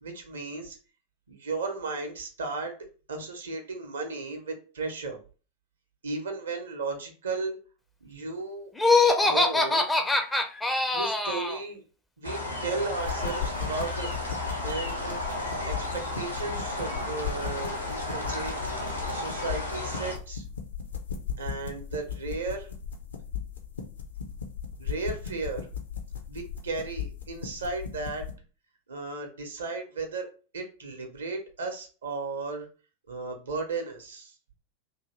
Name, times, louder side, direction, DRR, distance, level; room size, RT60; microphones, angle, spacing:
voice 1, 0.0-0.8 1.3-2.8 3.1-5.2 6.0-7.6 8.0-8.7 9.2-10.0 10.9-11.8 12.2-14.1 14.6-15.2 15.7-18.6 19.1-20.4 21.4-22.7 24.8-25.7 26.3-28.3 28.9-30.3 30.5-32.7 33.1-34.3, right 3 dB, 70° right, 5 dB, 0.7 m, -35 dB
Laughter, 8.8-11.6, left 3 dB, 5° left, 0.4 m, -23 dB
sound 1, 12.2-20.2, left 2 dB, 85° left, 0.9 m, -33 dB
sound 2, 13.0-28.3, left 7 dB, 70° left, 0.5 m, -37 dB
2.7 x 2.6 x 3.0 m, 0.36 s
figure-of-eight pair, 90°, 0 cm